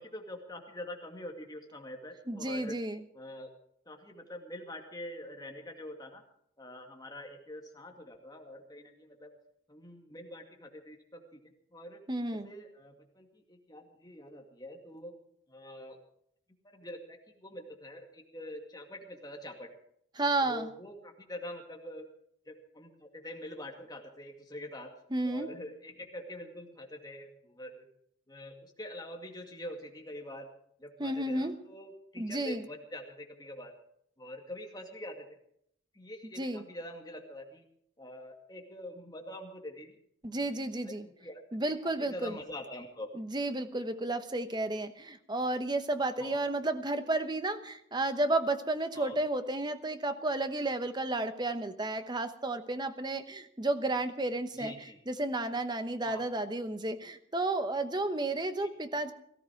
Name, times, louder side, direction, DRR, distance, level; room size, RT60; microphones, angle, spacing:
voice 1, 0.0-2.8 3.1-3.5 3.8-6.2 6.6-9.3 9.7-11.4 11.7-12.0 12.4-15.1 15.5-16.0 16.6-19.7 20.4-22.1 22.5-24.9 25.2-27.9 28.3-30.5 30.8-33.7 34.2-35.3 35.9-37.6 38.0-40.0 40.3-40.5 40.8-41.4 41.7-43.1 43.8-43.9 46.2-46.4 48.9-49.2 54.6-55.0 56.1-56.3 58.6-58.7, left 1 dB, 20° left, 2 dB, 2.3 m, -45 dB
voice 2, 2.3-3.0 12.1-12.5 20.2-20.7 25.1-25.5 31.0-31.6 32.2-32.6 36.4-36.6 40.2-41.1 41.5-42.4 43.1-54.7 55.1-59.1, right 2 dB, 20° right, 9 dB, 1.0 m, -32 dB
18.0 x 14.5 x 4.7 m, 0.70 s
head